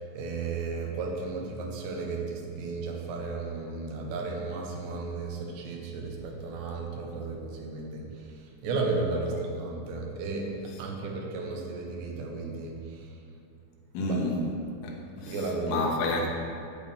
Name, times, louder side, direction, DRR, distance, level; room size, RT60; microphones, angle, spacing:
voice 1, 0.1-8.1 8.6-13.0 14.0-14.3 15.3-15.8, right 3 dB, 90° right, 0 dB, 3.2 m, -34 dB
voice 2, 13.9-14.4 14.8-16.3, left 2 dB, 85° left, -2 dB, 3.2 m, -30 dB
8.7 x 8.4 x 3.4 m, 2.4 s
omnidirectional pair, 4.9 m